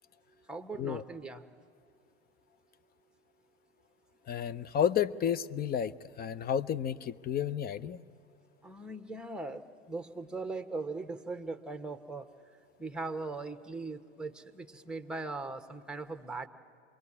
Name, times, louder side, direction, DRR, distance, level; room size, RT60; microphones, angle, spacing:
voice 1, 0.5-1.5 8.6-12.3 12.8-16.5, right 3 dB, ahead, 8 dB, 1.2 m, -39 dB
voice 2, 4.3-5.9 6.2-8.0, left 9 dB, 25° left, 16 dB, 0.6 m, -31 dB
26.0 x 21.5 x 9.8 m, 2.2 s
hypercardioid pair, 85°, 35 cm